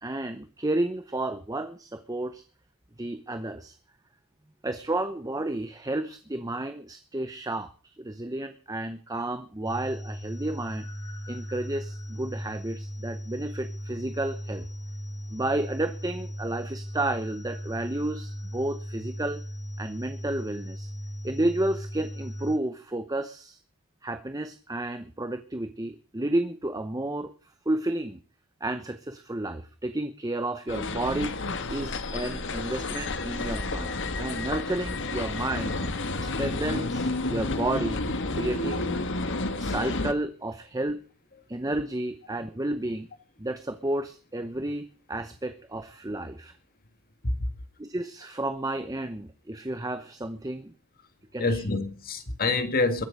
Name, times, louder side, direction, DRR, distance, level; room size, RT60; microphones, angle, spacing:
voice 1, 0.0-2.4 3.0-3.8 4.6-10.8 11.3-14.7 15.3-19.4 19.8-20.9 21.2-23.6 24.0-27.3 27.7-28.2 28.6-31.4 31.7-35.8 36.2-38.0 38.3-38.9 39.5-41.0 41.5-43.1 43.4-46.5 47.8-50.7 51.3-51.6, right 1 dB, 15° right, 0.8 m, -31 dB
sound 1, 9.7-22.6, equal, 15° left, 1.5 m, -37 dB
sound 2, 30.7-40.1, left 2 dB, 55° left, 1.5 m, -31 dB
voice 2, 51.4-53.0, left 3 dB, 40° left, 1.9 m, -26 dB
21.5 x 7.8 x 6.6 m
head